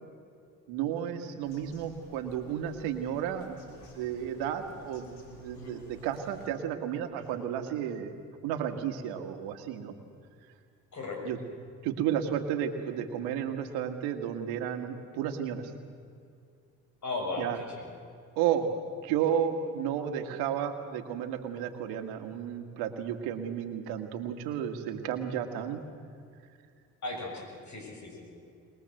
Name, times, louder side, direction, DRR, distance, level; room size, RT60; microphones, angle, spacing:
voice 1, 0.7-8.1 8.4-10.0 11.2-11.4 11.8-15.6 17.4-17.6 18.4-18.7 19.0-25.8, right 9 dB, 85° right, 7 dB, 1.9 m, -32 dB
Bird vocalization bird call bird song, 1.4-6.5, left 1 dB, 85° left, 4.0 m, -53 dB
voice 2, 10.9-11.2 17.0-17.9 27.0-28.4, left 2 dB, 50° left, 2 dB, 6.9 m, -37 dB
22.5 x 20.5 x 7.8 m, 2.4 s
supercardioid pair, 65°, 37 cm